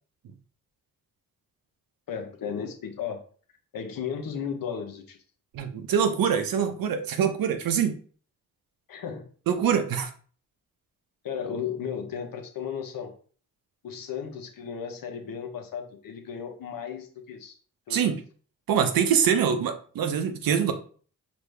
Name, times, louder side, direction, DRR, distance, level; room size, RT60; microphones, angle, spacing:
voice 1, 2.1-3.2 3.7-5.2 8.9-9.3 11.2-13.1 13.8-17.6 17.9-18.2, left 7 dB, 80° left, 4 dB, 1.0 m, -35 dB
voice 2, 5.5-8.0 9.5-10.1 17.9-18.2 18.7-20.7, right 8 dB, 85° right, 8 dB, 0.7 m, -24 dB
5.0 x 2.7 x 3.3 m, 0.43 s
cardioid pair, 70°, 34 cm